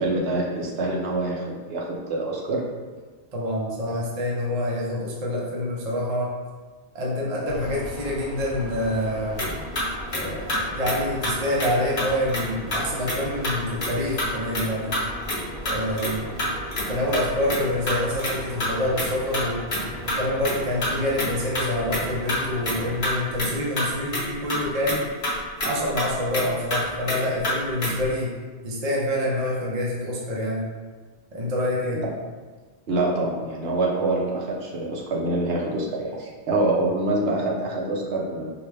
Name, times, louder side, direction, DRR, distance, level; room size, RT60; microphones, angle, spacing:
voice 1, 0.0-2.6 31.9-32.0 32.9-38.5, right 2 dB, 65° right, -3 dB, 1.0 m, -25 dB
voice 2, 3.3-6.3 6.9-9.4 10.1-15.0 15.7-16.5 16.9-19.6 20.1-25.0 25.6-28.3 28.6-30.6 31.3-32.0, left 1 dB, 40° right, -4 dB, 0.7 m, -26 dB
sound 1, 7.4-23.2, equal, 85° right, 1.6 m, -38 dB
sound 2, 9.4-9.5 9.8-9.9 10.1-10.2 10.5-10.6 10.9-11.0 11.2-11.7 12.0-12.4 12.7-13.2 13.4-13.5 13.8-13.9 14.2-14.6 14.9-16.9 17.1-17.6 17.9-18.7 19.0-19.1 19.3-20.5 20.8-22.0 22.3-22.4 22.7-22.8 23.0-23.5 23.8-24.2 24.5-24.6 24.9-25.0 25.2-25.3 25.6-26.5 26.7-26.8 27.1-27.2 27.4-27.5 27.8-28.1, left 1 dB, 50° left, 1.0 m, -26 dB
4.5 x 2.2 x 3.3 m, 1.4 s
omnidirectional pair, 1.1 m